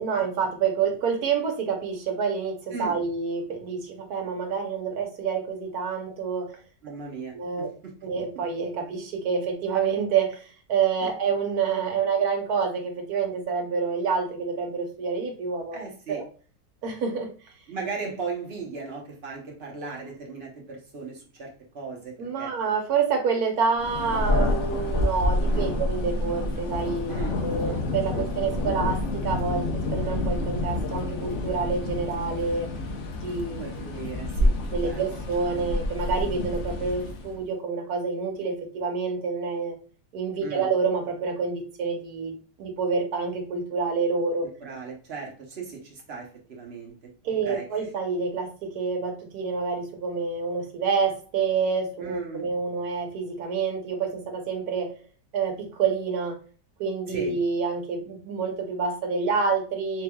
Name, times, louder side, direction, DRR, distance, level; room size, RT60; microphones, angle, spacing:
voice 1, 0.0-6.5 7.3-7.7 8.0-16.2 16.8-17.3 22.2-27.1 27.4-32.7 33.2-33.8 34.7-39.8 40.1-42.3 42.6-44.5 47.2-54.9 55.3-56.4 56.8-60.0, right 5 dB, 65° right, 3 dB, 1.3 m, -28 dB
voice 2, 6.8-7.9 11.0-11.1 15.7-16.2 17.7-22.5 25.5-25.8 27.1-27.9 28.1-28.3 33.6-34.6 34.8-35.0 40.4-40.7 44.6-47.1 47.4-47.8 52.0-52.5 57.1-57.3, right 4 dB, 45° right, 0 dB, 1.0 m, -37 dB
Thunder, 23.8-37.4, left 2 dB, 60° left, 0.8 m, -28 dB
4.1 x 3.3 x 2.3 m, 0.39 s
omnidirectional pair, 1.8 m